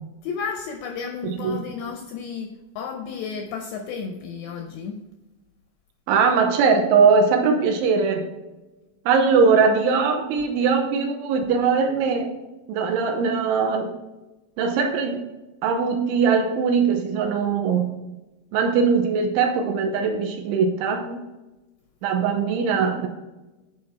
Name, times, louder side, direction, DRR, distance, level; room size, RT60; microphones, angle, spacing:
voice 1, 0.2-5.1, left 6 dB, 80° left, 2.4 m, -33 dB
voice 2, 1.2-1.7 6.1-8.3 9.1-12.4 12.7-13.9 14.6-15.2 15.6-18.0 18.5-21.3 22.0-23.1, right 5 dB, 80° right, 3.1 m, -21 dB
10.5 x 5.1 x 4.4 m
omnidirectional pair, 5.8 m